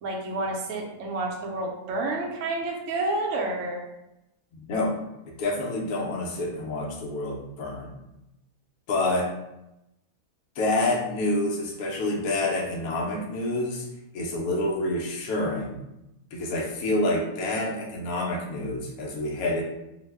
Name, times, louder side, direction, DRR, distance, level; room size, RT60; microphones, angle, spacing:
voice 1, 0.0-3.8, right 2 dB, 70° right, 0 dB, 0.8 m, -29 dB
voice 2, 4.5-4.9 5.4-7.9 8.9-9.3 10.6-13.9 14.1-15.8 16.3-19.6, left 2 dB, 80° left, -1 dB, 1.1 m, -27 dB
2.9 x 2.0 x 3.3 m, 0.90 s
omnidirectional pair, 1.5 m